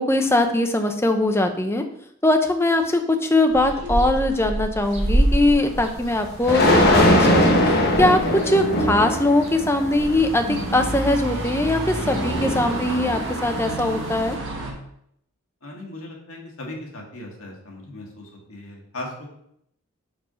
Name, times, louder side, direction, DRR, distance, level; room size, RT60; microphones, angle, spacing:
voice 1, 0.0-1.8 2.2-14.4, left 2 dB, 10° left, 6 dB, 0.5 m, -21 dB
sound 1, 3.5-14.7, right 1 dB, 55° right, 1.5 m, -29 dB
sound 2, 5.1-5.2 6.4-14.3, left 1 dB, 45° left, 1.1 m, -22 dB
voice 2, 15.6-19.4, left 1 dB, 70° left, -1 dB, 1.7 m, -38 dB
5.3 x 4.8 x 4.9 m, 0.72 s
head